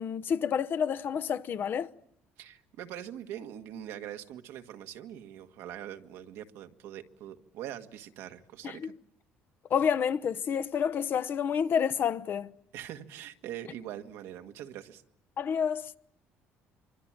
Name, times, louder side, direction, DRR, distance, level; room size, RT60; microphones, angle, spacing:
voice 1, 0.0-1.9 8.6-8.8 9.7-12.5 15.4-16.0, left 7 dB, 50° left, 1.0 m, -29 dB
voice 2, 2.4-8.9 12.7-15.0, right 11 dB, 80° right, 1.7 m, -43 dB
25.0 x 25.0 x 7.5 m
cardioid pair, 95°, 4 cm